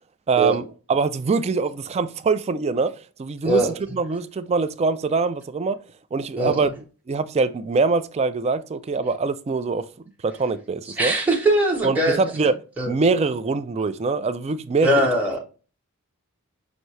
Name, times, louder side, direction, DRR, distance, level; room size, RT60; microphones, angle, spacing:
voice 1, 0.3-2.9 3.2-5.8 6.1-6.7 7.1-9.9 10.2-11.1 11.8-12.5 12.9-15.1, right 4 dB, 30° right, 0.3 m, -23 dB
voice 2, 11.0-12.2 12.8-12.9 14.8-15.4, right 1 dB, 5° right, 0.9 m, -20 dB
5.9 x 2.6 x 3.1 m
head